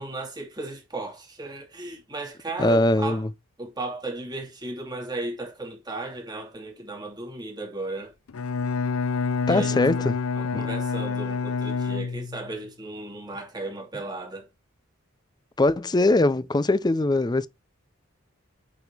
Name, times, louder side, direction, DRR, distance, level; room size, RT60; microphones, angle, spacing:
voice 1, 0.0-3.2 3.6-8.1 9.5-14.5, right 2 dB, 20° right, 2.5 m, -35 dB
voice 2, 2.6-3.3 9.5-10.1 10.5-10.6 15.6-17.5, left 2 dB, 20° left, 0.5 m, -21 dB
Bowed string instrument, 8.3-12.6, left 5 dB, 75° left, 0.5 m, -27 dB
9.0 x 4.2 x 3.4 m
head